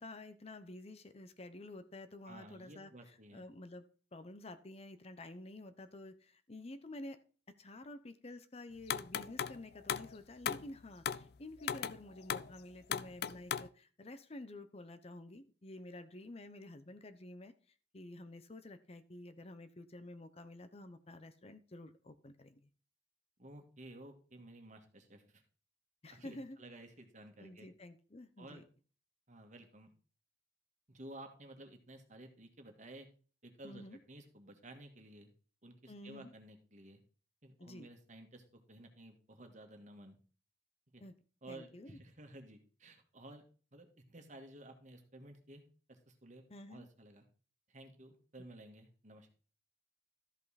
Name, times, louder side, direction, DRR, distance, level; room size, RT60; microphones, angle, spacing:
voice 1, 0.0-3.8 4.1-7.2 7.5-17.5 17.9-22.6 26.0-26.6 27.4-28.6 33.6-34.0 35.9-36.3 37.6-37.9 41.0-41.1 41.5-42.0 46.5-46.9, left 1 dB, 35° left, 11 dB, 0.8 m, -50 dB
voice 2, 2.3-3.5 23.4-25.4 26.1-27.7 28.4-28.6 29.3-29.9 30.9-33.1 33.4-35.3 35.6-37.0 37.4-40.2 40.9-41.0 41.4-43.4 43.7-45.6 45.9-47.3 47.7-49.3, right 1 dB, 45° right, 5 dB, 1.8 m, -54 dB
sound 1, 8.9-9.6 9.9-10.2 10.4-10.7 11.0-11.3 11.6-12.0 12.3-12.5 12.9-13.7, left 8 dB, 65° left, 0.4 m, -37 dB
13.0 x 5.5 x 4.1 m, 0.39 s
head